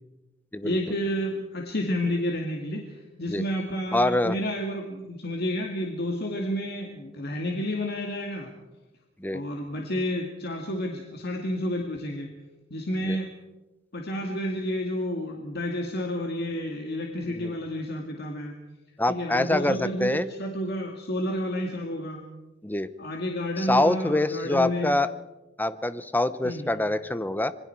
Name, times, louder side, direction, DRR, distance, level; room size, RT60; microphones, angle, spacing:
voice 1, 0.6-8.5 9.3-12.3 12.7-13.3 13.9-18.5 19.1-22.2 23.0-24.9 26.4-26.7, equal, 55° left, 2 dB, 2.2 m, -30 dB
voice 2, 3.9-4.4 9.2-9.4 13.0-13.2 17.3-17.6 19.0-20.3 22.6-22.9 23.6-25.1 25.6-27.5, left 1 dB, 10° left, 14 dB, 0.8 m, -25 dB
26.5 x 22.5 x 4.6 m, 1.0 s
head